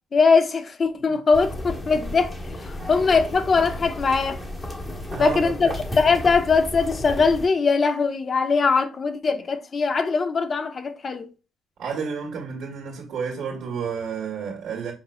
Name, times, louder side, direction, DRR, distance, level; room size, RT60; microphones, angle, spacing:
voice 1, 0.1-4.4 5.2-5.7 6.0-11.3, left 4 dB, 40° left, 0.9 m, -21 dB
sound 1, 1.3-7.5, left 1 dB, 25° left, 1.3 m, -33 dB
voice 2, 5.1-5.5 11.8-14.9, right 6 dB, 80° right, 1.7 m, -31 dB
5.8 x 4.1 x 2.2 m
cardioid pair, 90°, 0 cm